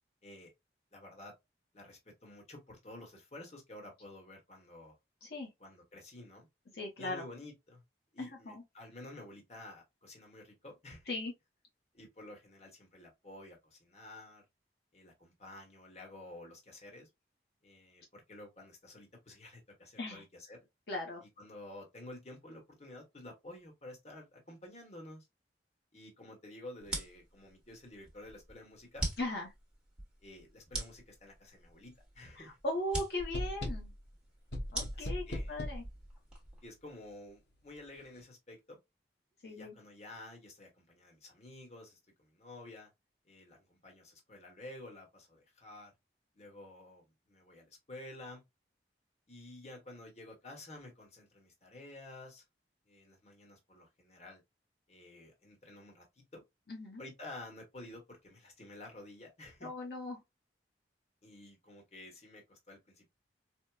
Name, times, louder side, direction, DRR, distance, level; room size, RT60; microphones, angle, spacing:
voice 1, 0.9-1.3 1.7-5.0 5.6-6.5 7.0-7.8 8.1-11.0 11.9-14.4 14.9-17.1 17.6-20.7 21.4-25.3 25.9-29.1 30.2-32.6 34.9-35.6 36.6-38.8 39.4-42.9 43.2-45.9 46.3-48.4 49.3-52.4 52.9-54.4 54.9-56.4 57.0-59.7 61.2-63.1, left 1 dB, 40° left, 1.0 m, -51 dB
voice 2, 5.2-5.5 6.7-7.2 8.5-8.6 11.1-11.3 20.0-20.2 20.9-21.2 29.2-29.5 32.4-33.9 34.7-35.8 39.4-39.8 56.7-57.0 59.6-60.2, left 1 dB, 65° left, 0.8 m, -38 dB
sound 1, 26.8-36.7, right 2 dB, 5° right, 1.0 m, -43 dB
sound 2, 33.2-34.0 34.5-35.9, equal, 90° left, 1.0 m, -38 dB
4.4 x 2.1 x 2.2 m
head